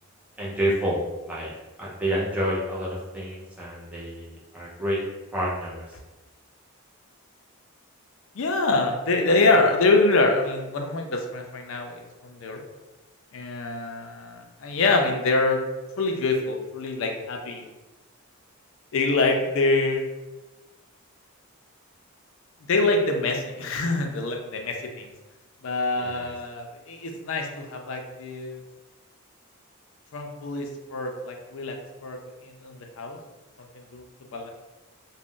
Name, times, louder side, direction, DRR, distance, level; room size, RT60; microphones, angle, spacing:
voice 1, 0.4-1.0 1.3-1.5 1.8-5.0 5.3-5.9 25.9-26.3, equal, 5° right, -6 dB, 0.6 m, -29 dB
voice 2, 8.3-12.6 13.3-15.6 16.0-17.7 18.9-20.1 22.7-25.1 25.6-28.6 30.1-31.8 32.0-33.2 33.7-34.1 34.3-34.5, left 3 dB, 60° left, 3 dB, 0.4 m, -25 dB
2.4 x 2.0 x 3.6 m, 1.1 s
head